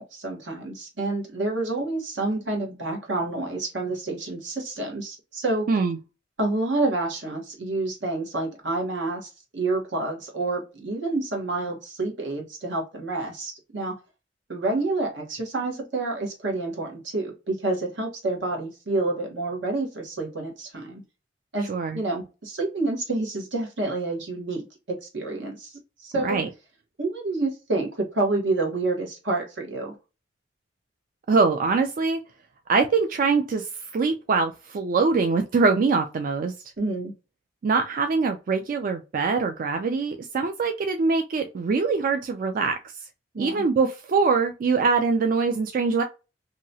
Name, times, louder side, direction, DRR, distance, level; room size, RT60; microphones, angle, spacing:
voice 1, 0.0-5.6 6.4-13.9 14.5-21.0 21.5-25.7 26.0-26.4 27.0-29.9 36.8-37.1 43.3-43.6, right 2 dB, 80° right, 1.2 m, -28 dB
voice 2, 21.7-22.0 26.1-26.5 31.3-32.2 32.7-36.5 37.6-42.8 43.4-46.0, right 4 dB, 50° right, 0.3 m, -23 dB
2.9 x 2.3 x 2.6 m
head